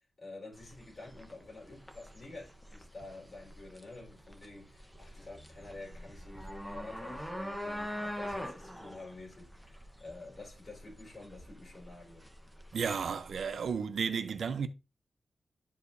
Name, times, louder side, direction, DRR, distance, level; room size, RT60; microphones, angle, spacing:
voice 1, 0.2-12.3, left 2 dB, 40° left, 4.3 m, -49 dB
sound 1, 0.5-13.7, equal, ahead, 1.1 m, -44 dB
voice 2, 12.7-14.7, right 6 dB, 75° right, 0.7 m, -33 dB
12.0 x 4.9 x 2.7 m
wide cardioid pair, 110°, 0 cm